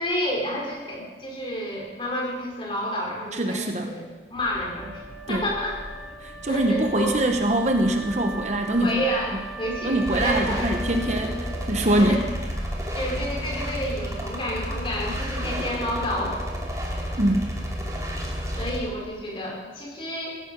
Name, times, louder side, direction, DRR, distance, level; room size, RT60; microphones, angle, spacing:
voice 1, 0.0-5.0 5.3-5.8 6.5-7.2 8.8-10.7 12.0-12.2 12.9-16.4 18.6-20.4, equal, 30° left, -2 dB, 4.3 m, -30 dB
voice 2, 3.3-3.9 5.3-5.5 6.2-9.0 9.8-12.2 17.2-17.6, right 1 dB, 40° right, 5 dB, 1.1 m, -23 dB
sound 1, 4.3-12.8, equal, 85° right, 4.8 m, -42 dB
Wind instrument woodwind instrument, 4.7-12.3, right 1 dB, ahead, 0.9 m, -40 dB
sound 2, 10.1-18.8, equal, 20° right, 2.6 m, -31 dB
16.5 x 15.0 x 5.3 m, 1.3 s
head